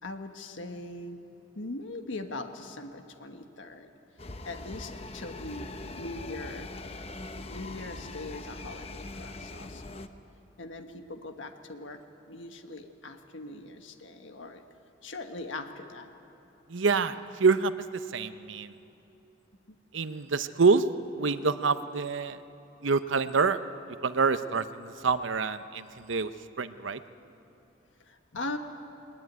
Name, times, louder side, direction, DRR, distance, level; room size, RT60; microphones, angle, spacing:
voice 1, 0.0-1.2 1.5-3.9 4.4-6.7 7.3-10.1 10.6-12.0 12.3-14.6 15.0-16.1 17.1-17.3 28.1-28.6, left 2 dB, 85° left, 6 dB, 1.5 m, -41 dB
sound 1, 4.2-10.1, left 2 dB, 30° left, 0.9 m, -41 dB
voice 2, 16.7-18.7 19.9-20.9 21.2-22.4 22.8-23.6 24.0-26.3 26.6-27.0, right 4 dB, 85° right, 12 dB, 0.8 m, -26 dB
21.0 x 20.5 x 9.4 m, 2.9 s
head